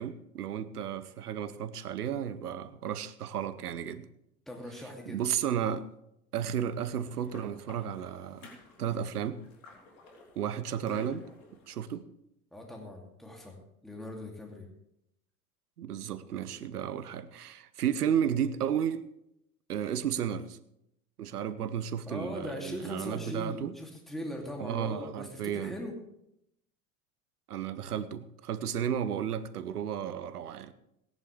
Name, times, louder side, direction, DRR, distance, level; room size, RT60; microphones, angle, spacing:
voice 1, 0.0-4.1 5.1-5.9 6.3-8.5 8.8-9.4 10.4-11.3 11.7-12.1 15.8-19.1 19.7-20.6 21.2-23.8 24.6-25.7 27.5-30.7, right 9 dB, 80° right, 0.9 m, -33 dB
voice 2, 4.5-5.2 12.5-13.6 13.8-14.7 22.1-25.9, left 1 dB, ahead, 2.5 m, -40 dB
sound 1, 6.8-11.9, left 3 dB, 60° left, 3.5 m, -53 dB
18.0 x 10.5 x 3.3 m
figure-of-eight pair, 80°, 46 cm